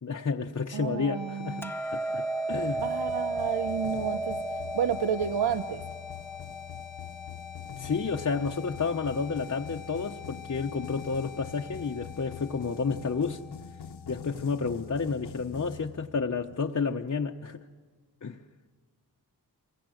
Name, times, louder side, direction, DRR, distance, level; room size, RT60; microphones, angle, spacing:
voice 1, 0.0-1.7 1.9-2.9 7.8-13.4 14.1-17.6 18.2-18.4, left 5 dB, 40° left, 1.0 m, -31 dB
voice 2, 0.7-1.7 2.8-4.4 4.7-5.8, right 8 dB, 85° right, 1.0 m, -30 dB
sound 1, 0.9-14.8, left 7 dB, 65° right, 4.1 m, -46 dB
Hammer, 1.6-7.8, right 2 dB, 5° left, 0.8 m, -34 dB
sound 2, 2.5-16.4, left 8 dB, 80° left, 1.2 m, -45 dB
28.0 x 24.0 x 7.8 m
wide cardioid pair, 120°, 39 cm